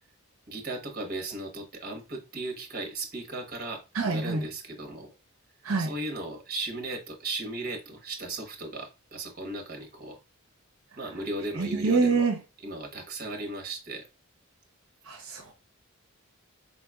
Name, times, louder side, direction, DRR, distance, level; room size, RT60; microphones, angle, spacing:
voice 1, 0.5-5.1 5.8-10.2 11.0-12.3 12.6-14.1, right 2 dB, 45° right, 1.1 m, -36 dB
voice 2, 3.9-4.4 5.6-5.9 11.6-12.3 15.1-15.5, right 4 dB, 70° right, 0.7 m, -26 dB
4.2 x 4.1 x 2.3 m
head